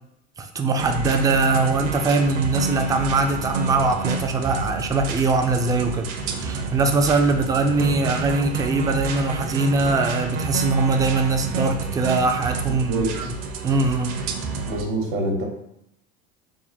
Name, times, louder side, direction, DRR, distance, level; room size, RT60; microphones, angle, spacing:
voice 1, 0.4-13.3 13.6-14.2, right 3 dB, 10° right, 5 dB, 0.3 m, -22 dB
sound 1, 0.8-14.8, right 3 dB, 50° right, 0.6 m, -29 dB
voice 2, 12.9-13.3 14.7-15.5, right 2 dB, 70° right, 1 dB, 1.0 m, -25 dB
3.6 x 2.2 x 4.1 m, 0.80 s
supercardioid pair, 95°, 33 cm